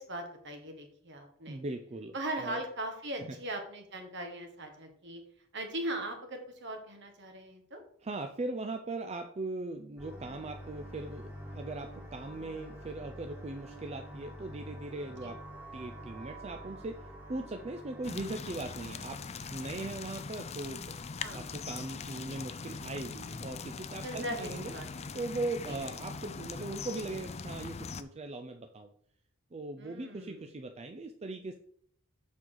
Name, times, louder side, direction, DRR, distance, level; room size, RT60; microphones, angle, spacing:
voice 1, 0.0-1.6 2.1-5.2 5.5-7.8 15.2-15.3 21.2-21.4 24.0-24.9 25.7-25.8 29.8-30.4, right 1 dB, 60° right, 4 dB, 1.7 m, -39 dB
voice 2, 1.5-2.6 3.2-3.4 8.0-15.4 15.7-19.2 19.5-20.9 21.3-24.7 25.1-28.9 29.5-31.5, right 2 dB, 30° right, 5 dB, 0.5 m, -39 dB
sound 1, 10.0-19.0, equal, 10° right, 2.0 m, -47 dB
sound 2, 18.0-28.0, left 5 dB, 30° left, 0.4 m, -41 dB
7.3 x 6.3 x 3.9 m, 0.63 s
head